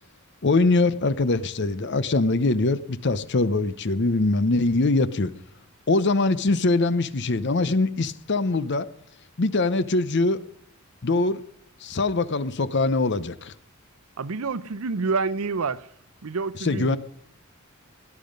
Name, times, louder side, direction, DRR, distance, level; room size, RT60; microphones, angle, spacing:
voice 1, 0.4-5.3 5.9-8.9 9.4-10.4 11.0-11.4 11.8-13.5 16.6-17.0, left 3 dB, 55° left, 0.7 m, -23 dB
voice 2, 14.2-15.9 16.2-17.0, right 4 dB, 80° right, 0.7 m, -28 dB
17.5 x 11.0 x 5.2 m
head